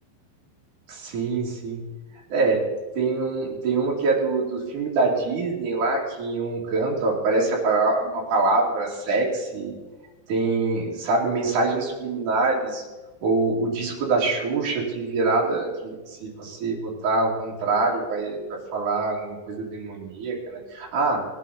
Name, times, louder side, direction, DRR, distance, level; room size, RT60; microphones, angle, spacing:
voice 1, 0.9-1.9 2.3-2.7 2.9-9.7 10.3-12.8 13.2-18.4 18.7-21.3, right 3 dB, 50° right, -2 dB, 3.7 m, -24 dB
19.5 x 9.2 x 4.1 m, 1.2 s
omnidirectional pair, 5.1 m